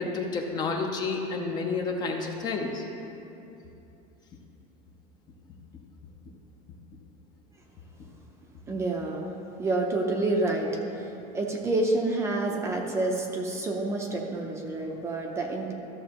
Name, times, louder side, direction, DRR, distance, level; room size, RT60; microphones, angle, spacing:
voice 1, 0.0-2.8, left 4 dB, 25° left, 2 dB, 0.6 m, -30 dB
voice 2, 8.7-9.3 9.6-15.7, right 2 dB, 15° right, 1 dB, 0.6 m, -28 dB
13.5 x 6.7 x 2.9 m, 2.7 s
cardioid pair, 175°, 17 cm